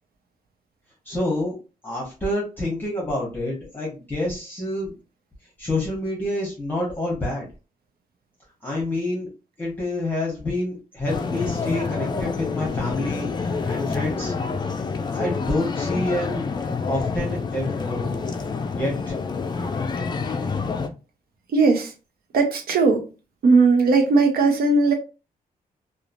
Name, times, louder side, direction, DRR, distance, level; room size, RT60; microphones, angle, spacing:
voice 1, 1.0-1.5 1.8-4.9 5.6-7.5 8.6-9.3 9.6-14.3 15.1-16.5 16.8-18.2 18.7-19.1, left 1 dB, 15° left, 1.0 m, -28 dB
sound 1, 11.1-20.9, left 4 dB, 30° left, 0.4 m, -27 dB
voice 2, 21.5-21.9 22.3-23.1 23.4-24.9, right 3 dB, 80° right, 0.7 m, -18 dB
3.0 x 2.3 x 2.5 m
wide cardioid pair, 130°, 15 cm